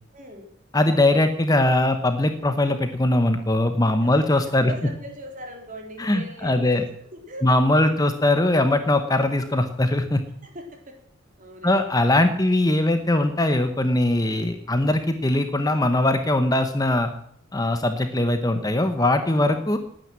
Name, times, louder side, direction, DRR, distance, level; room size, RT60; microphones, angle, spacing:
voice 1, 0.1-0.5 4.0-4.3 4.6-6.7 7.0-8.0 10.4-11.0 11.4-11.9 14.3-14.6 18.5-18.7 19.0-19.5, right 1 dB, 40° right, 3 dB, 3.6 m, -41 dB
voice 2, 0.7-4.7 6.0-6.8 7.4-10.2 11.6-17.1 17.5-19.8, left 1 dB, 20° left, 7 dB, 1.0 m, -21 dB
19.5 x 9.4 x 7.6 m, 0.66 s
head